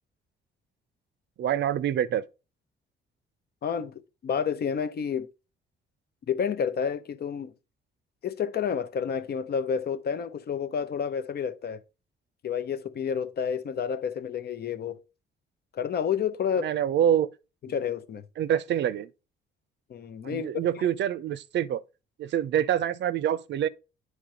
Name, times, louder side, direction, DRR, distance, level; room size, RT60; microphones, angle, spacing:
voice 1, 1.4-2.2 16.6-17.3 18.4-19.1 20.2-21.8 22.2-23.7, right 10 dB, 65° right, 0.6 m, -26 dB
voice 2, 3.6-3.9 4.2-5.3 6.3-7.5 8.2-11.8 12.4-15.0 15.7-16.7 17.6-18.2 19.9-20.7, left 7 dB, 55° left, 0.8 m, -30 dB
9.2 x 3.2 x 5.0 m
cardioid pair, 90°, 20 cm